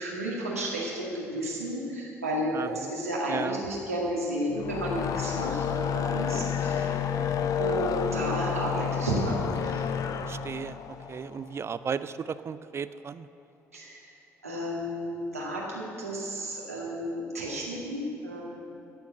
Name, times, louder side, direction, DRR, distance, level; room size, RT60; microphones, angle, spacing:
voice 1, 0.0-7.0 7.6-10.2 13.7-14.0 14.4-18.4, equal, 90° right, -4 dB, 2.1 m, -32 dB
voice 2, 2.5-2.9 3.3-3.6 7.1-7.5 10.2-13.3, right 6 dB, 35° right, 14 dB, 0.5 m, -35 dB
sound 1, 4.5-11.9, left 7 dB, 50° left, 0.7 m, -30 dB
15.5 x 7.1 x 7.7 m, 2.8 s
figure-of-eight pair, 50°, 8 cm